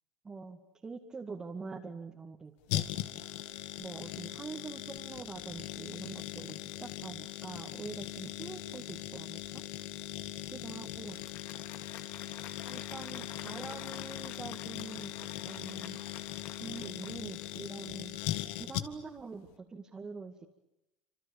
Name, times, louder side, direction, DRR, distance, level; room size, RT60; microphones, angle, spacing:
voice 1, 0.2-2.8 3.8-9.6 10.5-11.2 12.7-16.0 16.5-18.2 18.6-20.5, right 4 dB, 15° right, 1 dB, 2.2 m, -45 dB
sound 1, 2.7-19.2 19.5-19.6, left 14 dB, 70° left, 1.9 m, -40 dB
Applause, 11.0-17.9, left 10 dB, 55° left, 3.1 m, -51 dB
29.0 x 27.0 x 7.2 m, 0.90 s
cardioid pair, 155°, 4 cm